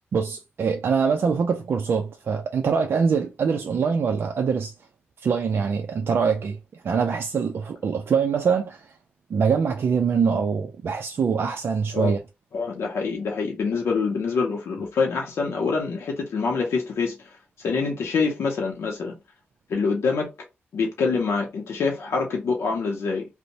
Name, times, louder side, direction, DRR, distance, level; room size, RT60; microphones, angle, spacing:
voice 1, 0.1-4.7 5.2-6.6 6.8-8.9 9.3-12.2, right 6 dB, 65° right, 0.3 m, -24 dB
voice 2, 12.5-17.3 17.6-19.1 19.7-20.3 20.7-23.3, left 4 dB, 85° left, 0.5 m, -25 dB
2.6 x 2.0 x 2.8 m
cardioid pair, 90°, 4 cm